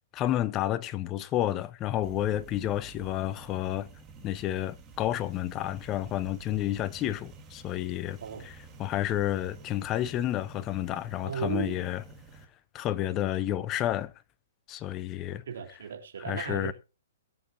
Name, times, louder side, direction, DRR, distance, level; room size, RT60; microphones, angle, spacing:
voice 1, 0.1-3.9 4.2-12.0 12.7-14.1 14.7-15.4 16.2-16.7, left 13 dB, 30° left, 0.8 m, -30 dB
sound 1, 2.0-12.4, right 5 dB, 20° right, 2.2 m, -50 dB
voice 2, 11.2-11.8 15.5-16.7, right 7 dB, 70° right, 3.3 m, -35 dB
22.0 x 7.6 x 2.6 m
hypercardioid pair, 130°, 0 cm